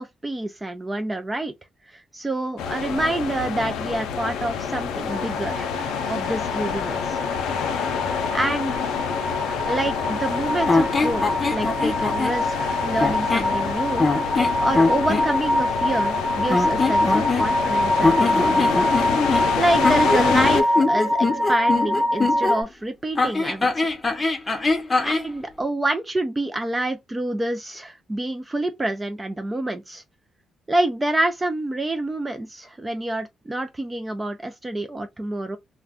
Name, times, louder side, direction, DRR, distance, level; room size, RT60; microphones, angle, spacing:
voice 1, 0.0-1.5 1.9-7.2 8.3-8.7 9.7-18.7 19.6-23.9 25.0-30.0 30.7-35.6, right 1 dB, 20° right, 0.4 m, -27 dB
sound 1, 2.6-20.6, left 7 dB, 85° left, 0.5 m, -28 dB
sound 2, 5.1-22.6, left 1 dB, 70° right, 1.1 m, -24 dB
sound 3, 10.7-12.4 13.0-13.6 14.0-15.3 16.5-17.7 18.0-22.6 23.2-25.3, left 3 dB, 25° left, 0.7 m, -23 dB
2.4 x 2.2 x 3.5 m
cardioid pair, 90°, 0 cm